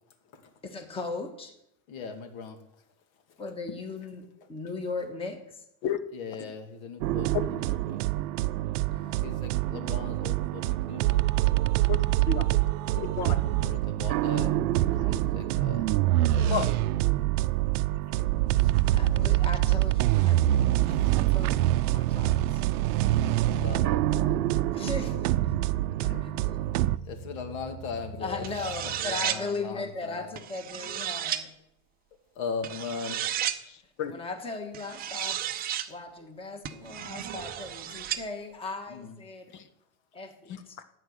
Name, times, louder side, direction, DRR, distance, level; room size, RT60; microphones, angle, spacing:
voice 1, 0.6-1.5 3.4-5.6 8.9-9.4 18.8-20.5 21.1-22.6 24.7-25.5 26.0-26.6 28.2-31.5 34.1-35.4 35.9-39.5 40.1-40.8, left 3 dB, 10° left, 4 dB, 1.5 m, -38 dB
voice 2, 1.9-2.6 6.1-8.0 9.2-11.3 13.4-14.6 15.0-16.0 16.3-16.7 20.8-21.2 21.5-21.7 23.6-24.5 27.0-28.5 28.8-30.3 32.3-33.2 38.9-39.2, left 5 dB, 65° left, 5 dB, 2.8 m, -39 dB
sound 1, 7.0-27.0, right 15 dB, 80° right, 0.7 m, -25 dB
voice 3, 12.3-12.6 12.9-13.4 16.5-16.6 26.1-26.2 33.6-34.2 39.5-39.6 40.5-40.8, left 8 dB, 50° left, 10 dB, 1.4 m, -32 dB
sound 2, 22.9-29.0, equal, 30° left, 1.8 m, -47 dB
sound 3, 28.4-29.4 30.4-31.4 32.6-33.6 34.7-35.9 36.6-38.2, right 11 dB, 20° right, 0.7 m, -33 dB
14.0 x 9.5 x 6.4 m, 0.79 s
supercardioid pair, 165°, 44 cm